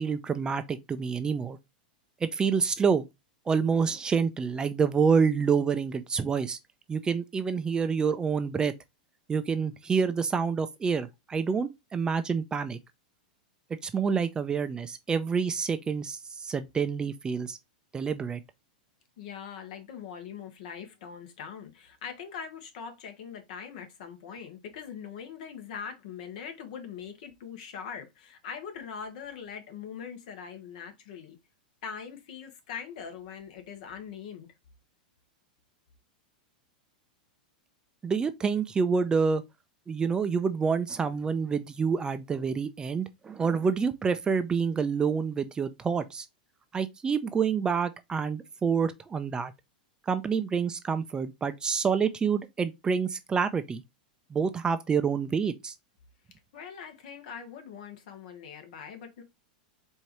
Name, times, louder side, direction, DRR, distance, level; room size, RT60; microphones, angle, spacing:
voice 1, 0.0-1.6 2.2-3.0 3.5-6.6 6.9-8.7 9.3-12.8 13.8-17.6 17.9-18.4 38.0-39.4 39.9-46.3 46.7-49.5 50.1-53.8 54.3-55.7, right 6 dB, 15° right, 0.4 m, -27 dB
voice 2, 19.2-31.4 31.8-34.5 56.5-59.2, left 7 dB, 65° left, 1.2 m, -42 dB
4.5 x 2.7 x 3.0 m
hypercardioid pair, 115°, 5 cm